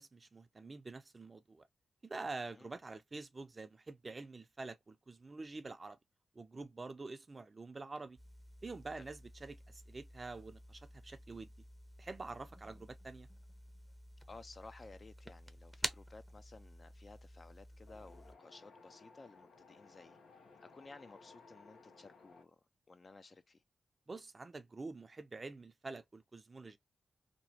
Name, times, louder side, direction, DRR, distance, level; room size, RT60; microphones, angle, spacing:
voice 1, 0.0-1.7 2.0-6.0 6.3-8.2 8.6-11.5 12.0-13.3 24.1-26.8, right 3 dB, 40° right, 0.5 m, -47 dB
sound 1, 8.2-18.3, equal, ahead, 0.7 m, -50 dB
voice 2, 14.3-20.2 20.6-22.6 22.9-23.6, left 3 dB, 45° left, 0.5 m, -56 dB
Wind, 17.9-22.4, left 4 dB, 85° left, 0.9 m, -60 dB
3.0 x 2.0 x 2.8 m
cardioid pair, 50°, 0 cm